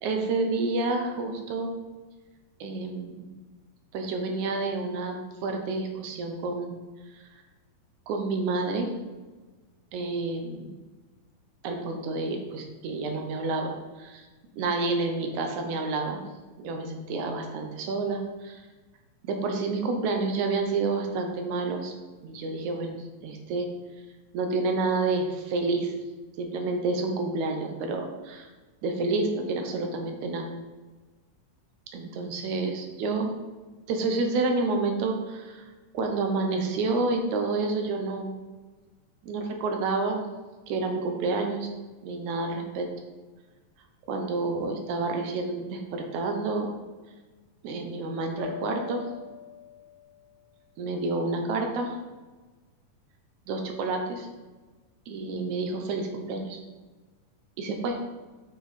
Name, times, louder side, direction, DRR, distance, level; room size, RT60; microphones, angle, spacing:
voice 1, 0.0-1.7 2.6-3.3 3.9-6.7 7.1-7.2 8.1-8.9 9.9-10.7 11.6-14.2 14.6-16.2 16.6-18.6 19.2-21.9 22.2-23.7 24.3-25.9 26.4-28.5 28.8-30.5 31.9-33.3 33.9-35.6 35.9-38.3 39.2-40.2 40.7-41.7 42.0-42.9 44.1-46.7 47.6-49.0 50.8-52.0 53.5-54.3 55.1-56.6 57.6-58.0, right 3 dB, 75° right, 3 dB, 2.2 m, -29 dB
sound 1, 48.4-50.3, left 7 dB, 80° left, 0.8 m, -41 dB
8.2 x 6.0 x 4.1 m, 1.3 s
omnidirectional pair, 3.6 m